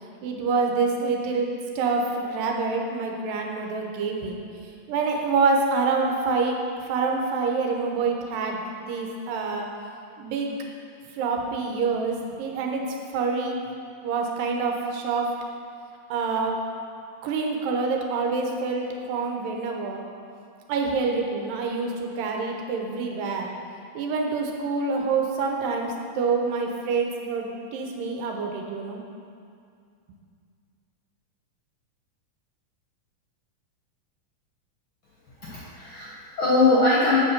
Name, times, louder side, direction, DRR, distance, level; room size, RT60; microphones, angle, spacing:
voice 1, 0.2-1.5 1.8-4.4 4.9-6.6 6.9-9.7 10.2-10.5 11.2-12.8 13.1-13.6 14.0-15.3 16.1-16.6 17.2-20.0 20.7-23.5 23.9-29.0, right 4 dB, 90° right, 1 dB, 2.6 m, -26 dB
voice 2, 35.4-37.2, left 2 dB, 60° left, -6 dB, 1.4 m, -21 dB
7.6 x 5.8 x 5.8 m, 2.3 s
omnidirectional pair, 3.8 m